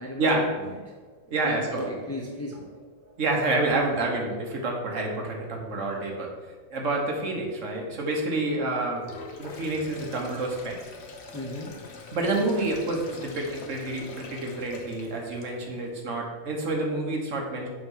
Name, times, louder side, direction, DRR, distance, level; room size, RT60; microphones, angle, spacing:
voice 1, 0.0-1.1 1.4-3.2 11.3-11.9 15.5-15.9, left 1 dB, 15° left, -1 dB, 0.6 m, -37 dB
voice 2, 1.3-1.8 3.2-6.3 6.7-9.0 9.4-10.8 12.1-17.7, right 2 dB, 70° right, 0 dB, 1.4 m, -28 dB
Sink (filling or washing), 8.9-15.8, left 3 dB, 60° left, 1.0 m, -44 dB
6.9 x 3.1 x 5.4 m, 1.5 s
omnidirectional pair, 1.4 m